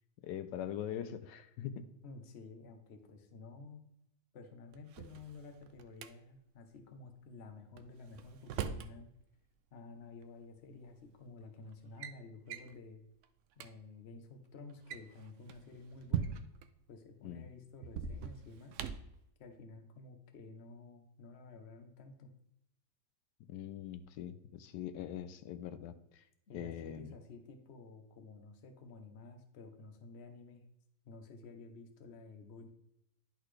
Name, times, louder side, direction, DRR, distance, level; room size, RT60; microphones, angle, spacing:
voice 1, 0.2-1.8 17.2-17.5 23.5-26.2 26.5-27.2, left 10 dB, 85° left, 11 dB, 1.2 m, -42 dB
voice 2, 2.0-3.9 4.3-9.1 9.7-13.0 13.6-16.4 16.9-18.8 19.4-22.3 26.5-30.6 31.0-32.7, left 3 dB, 45° left, 6 dB, 1.0 m, -52 dB
Drawer open or close, 4.7-6.1 7.8-8.9 10.2-10.3 11.1-11.4 11.7-12.2 12.5-12.7 13.2-13.3 13.5-13.7 14.7-16.7 17.8-19.2, right 7 dB, 80° right, 0.6 m, -41 dB
11.0 x 4.0 x 3.2 m, 0.81 s
omnidirectional pair, 1.8 m